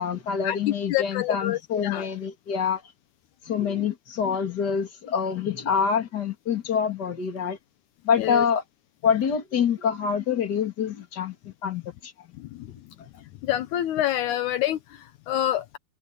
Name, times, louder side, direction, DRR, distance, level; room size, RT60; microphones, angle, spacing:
voice 1, 0.0-2.8 3.4-7.6 8.0-8.6 9.0-12.3 13.0-13.1, left 7 dB, 30° left, 2.2 m, -26 dB
voice 2, 0.9-2.1 8.2-8.4 12.4-12.7 13.4-15.8, left 13 dB, 85° left, 1.7 m, -27 dB
omnidirectional pair, 4.5 m